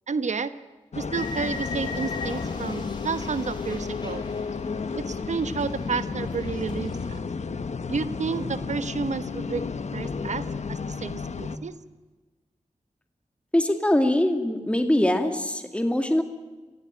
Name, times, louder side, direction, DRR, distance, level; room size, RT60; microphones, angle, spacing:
voice 1, 0.1-0.6 0.9-4.2 5.1-7.2 7.9-9.6 9.9-11.7, right 5 dB, 75° right, 12 dB, 1.2 m, -31 dB
sound 1, 0.9-11.6, left 4 dB, 70° left, 1.3 m, -32 dB
sound 2, 1.1-5.1 5.3-7.2, left 3 dB, 40° left, 4.6 m, -39 dB
voice 2, 13.5-16.2, left 1 dB, 10° left, 6 dB, 2.3 m, -22 dB
26.5 x 16.0 x 9.0 m, 1.3 s
cardioid pair, 60°, 12 cm